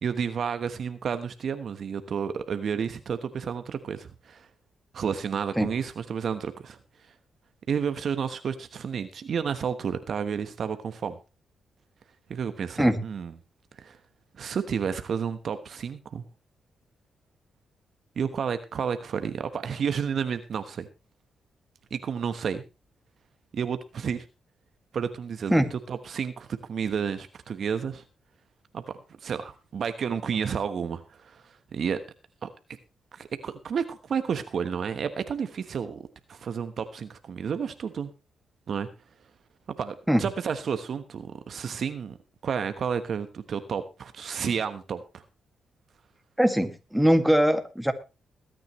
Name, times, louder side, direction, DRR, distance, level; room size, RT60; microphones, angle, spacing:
voice 1, 0.0-4.5 4.9-6.8 7.7-11.2 12.3-13.3 13.8-14.0 14.3-16.2 18.1-20.9 21.9-22.6 23.5-24.2 24.9-25.6 25.9-28.0 28.7-28.8 29.2-32.0 32.4-32.5 33.1-36.0 36.3-38.1 38.7-38.9 39.8-42.2 42.4-45.2, right 7 dB, 65° right, 10 dB, 1.2 m, -31 dB
voice 2, 46.4-47.9, equal, ahead, 6 dB, 2.1 m, -21 dB
21.0 x 9.2 x 3.2 m, 0.29 s
cardioid pair, 65°, 0 cm